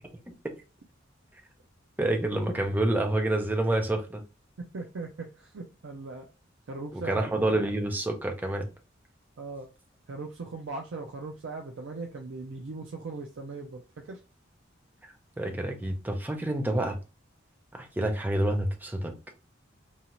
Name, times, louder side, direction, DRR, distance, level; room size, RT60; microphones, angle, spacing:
voice 1, 2.0-4.2 6.9-8.7 15.0-17.0 17.7-19.1, right 1 dB, 10° right, 0.5 m, -28 dB
voice 2, 4.7-6.3 6.7-7.3 9.4-9.7 10.1-13.8 14.1-14.2, right 3 dB, 65° right, 0.5 m, -39 dB
2.7 x 2.3 x 2.9 m
head